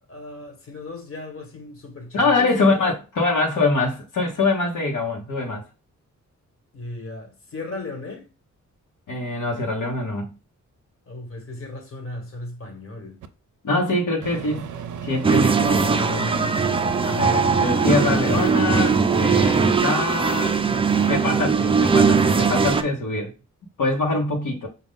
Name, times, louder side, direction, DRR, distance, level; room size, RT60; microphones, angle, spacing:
voice 1, 0.1-3.0 6.7-8.3 11.1-13.2, left 2 dB, 45° left, 1.4 m, -36 dB
voice 2, 2.1-5.6 9.1-10.3 13.6-14.7 15.0-16.6 17.0-20.6 21.1-23.3 23.8-24.7, left 3 dB, 80° left, 1.0 m, -24 dB
Microwave oven, 13.2-13.3 14.2-18.5, right 7 dB, 80° right, 0.5 m, -34 dB
sound 1, 15.2-22.8, right 5 dB, 20° right, 0.3 m, -20 dB
5.1 x 2.3 x 3.6 m
wide cardioid pair, 135°, 31 cm